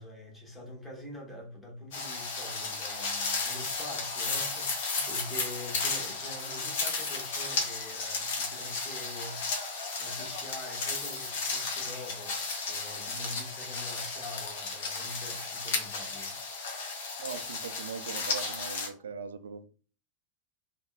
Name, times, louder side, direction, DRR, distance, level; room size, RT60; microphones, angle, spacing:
voice 1, 0.0-17.0, left 1 dB, 10° left, 1.2 m, -45 dB
sound 1, 1.9-18.9, left 4 dB, 55° left, 0.8 m, -34 dB
voice 2, 17.2-19.6, right 6 dB, 65° right, 0.3 m, -40 dB
3.4 x 2.1 x 2.3 m
figure-of-eight pair, 90°, 0 cm